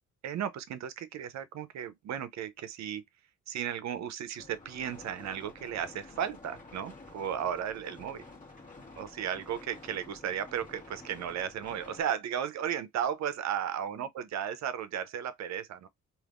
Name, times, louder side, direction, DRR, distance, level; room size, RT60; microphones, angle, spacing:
voice 1, 0.2-3.0 3.5-8.2 9.0-15.9, right 9 dB, 65° right, 0.6 m, -35 dB
sound 1, 4.3-12.0, left 3 dB, 25° left, 1.5 m, -50 dB
3.4 x 2.5 x 2.4 m
cardioid pair, 90°, 30 cm